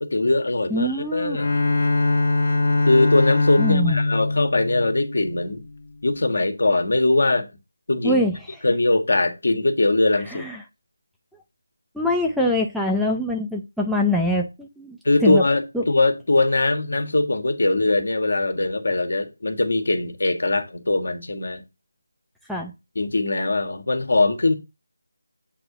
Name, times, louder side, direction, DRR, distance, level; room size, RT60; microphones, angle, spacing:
voice 1, 0.0-1.5 2.9-5.6 6.0-7.5 7.9-8.2 8.6-10.5 15.0-21.6 22.9-24.5, left 2 dB, 60° left, 1.5 m, -21 dB
voice 2, 0.7-1.4 3.6-4.0 8.0-8.4 10.3-10.6 11.9-15.4 15.7-15.8 22.5-22.7, left 1 dB, ahead, 0.4 m, -24 dB
Bowed string instrument, 1.3-5.6, left 2 dB, 45° left, 0.9 m, -22 dB
8.1 x 2.8 x 5.9 m
figure-of-eight pair, 170°, 0 cm